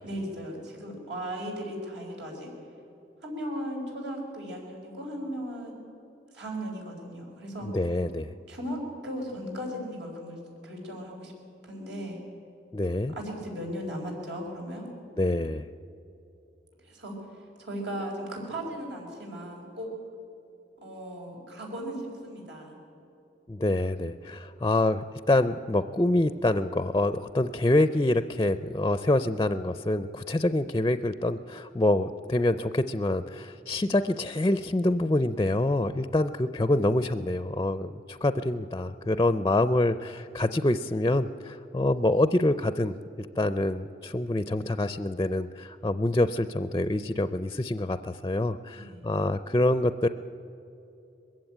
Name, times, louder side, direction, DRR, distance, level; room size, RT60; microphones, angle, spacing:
voice 1, 0.0-2.5 3.2-5.7 6.3-7.7 8.5-11.3 11.6-12.2 13.2-14.9 16.8-17.1 17.6-19.9 20.8-22.7 48.7-49.0, equal, 85° right, 0 dB, 4.9 m, -37 dB
voice 2, 7.7-8.3 12.7-13.1 15.2-15.7 23.5-50.1, left 1 dB, 20° left, 12 dB, 0.4 m, -26 dB
21.0 x 15.5 x 8.9 m, 2.9 s
head